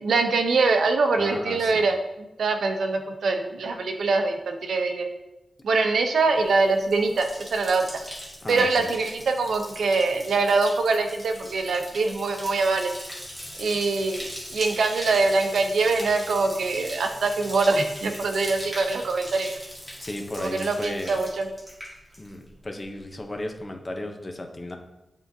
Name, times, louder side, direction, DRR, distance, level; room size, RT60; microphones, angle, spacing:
voice 1, 0.0-5.1 5.6-7.8 8.5-12.9 13.6-14.2 14.5-19.5 20.4-21.5, right 3 dB, 80° right, 5 dB, 0.6 m, -23 dB
voice 2, 1.2-1.9 8.4-8.9 20.0-21.1 22.2-24.8, left 1 dB, 25° left, 4 dB, 0.7 m, -34 dB
Bathtub (filling or washing), 6.4-22.5 22.8-23.3, equal, 5° right, 1.6 m, -40 dB
10.5 x 3.7 x 2.7 m, 0.95 s
wide cardioid pair, 140°, 0 cm